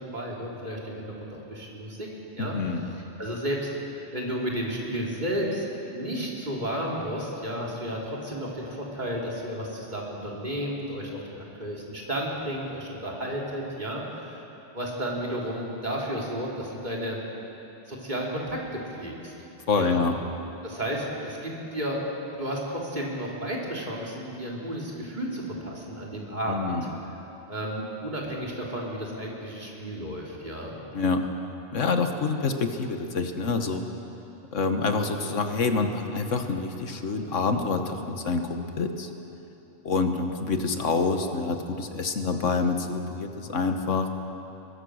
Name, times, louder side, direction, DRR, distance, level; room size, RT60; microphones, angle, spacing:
voice 1, 0.0-2.1 2.4-2.5 3.2-3.7 4.1-14.4 14.7-17.2 17.9-19.3 19.8-20.0 20.6-22.0 22.3-26.8 27.5-30.8, equal, 40° right, -3 dB, 3.7 m, -32 dB
voice 2, 2.4-2.8 19.7-20.2 26.5-26.9 30.9-31.3 31.7-33.8 34.5-39.1 39.8-44.1, left 4 dB, 85° left, 6 dB, 1.7 m, -27 dB
23.5 x 20.5 x 6.5 m, 3.0 s
omnidirectional pair, 1.2 m